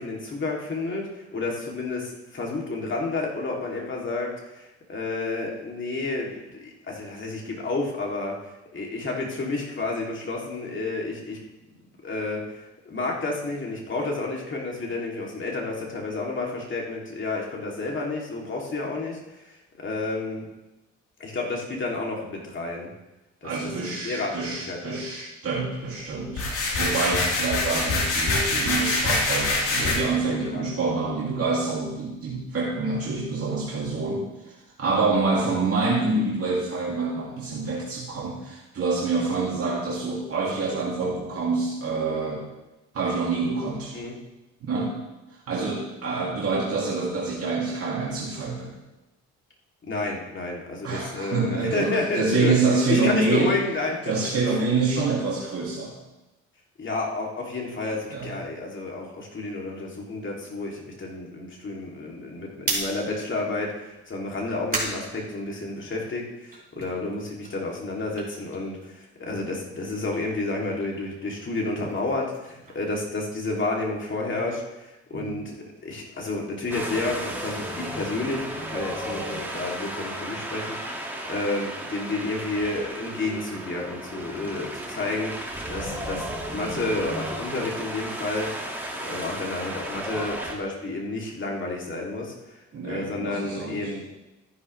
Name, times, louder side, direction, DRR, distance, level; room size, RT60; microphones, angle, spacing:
voice 1, 0.0-11.4 12.0-20.4 21.2-22.9 23.4-23.5 23.8-25.0 30.4-30.6 43.9-44.2 45.6-45.7 49.9-52.5 52.9-54.1 56.8-88.7 89.0-94.1, left 2 dB, 40° left, -2 dB, 2.8 m, -31 dB
voice 2, 23.4-26.5 26.8-42.4 42.9-44.0 44.6-44.9 45.5-48.7 50.8-53.5 54.1-55.9 58.1-58.3 66.8-67.0 75.1-75.4 92.7-94.2, right 3 dB, 50° right, -5 dB, 2.5 m, -26 dB
sound 1, 26.3-29.9, left 2 dB, 80° left, 3.6 m, -24 dB
sound 2, 62.6-66.0 66.4-69.3 69.6-73.7, right 2 dB, 30° right, 4.1 m, -37 dB
Wind, 76.7-90.5, right 1 dB, 5° right, 2.0 m, -34 dB
13.5 x 10.5 x 3.3 m, 1.0 s
cardioid pair, 90°, 30 cm